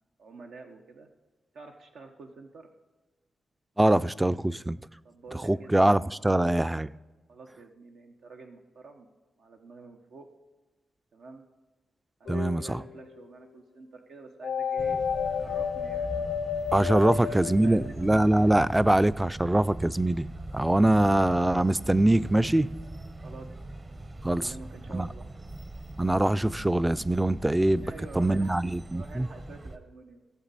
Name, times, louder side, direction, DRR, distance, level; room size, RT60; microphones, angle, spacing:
voice 1, 0.2-1.1 1.5-2.7 5.0-6.4 7.3-9.1 9.4-10.3 11.1-11.4 12.2-15.0 15.3-16.4 16.9-18.6 23.2-23.5 24.3-25.3 27.8-28.5 28.9-30.2, right 3 dB, 85° right, 0.9 m, -48 dB
voice 2, 3.8-4.8 5.4-6.9 12.3-12.8 16.7-20.3 20.5-22.7 24.2-24.5 24.9-25.1 26.0-27.8 28.2-29.3, right 1 dB, 10° right, 0.3 m, -23 dB
sound 1, 12.3-13.0 14.4-18.3, left 7 dB, 90° left, 0.4 m, -31 dB
sound 2, 14.8-29.8, right 2 dB, 35° right, 0.9 m, -41 dB
16.5 x 7.1 x 4.1 m
cardioid pair, 90°, 0 cm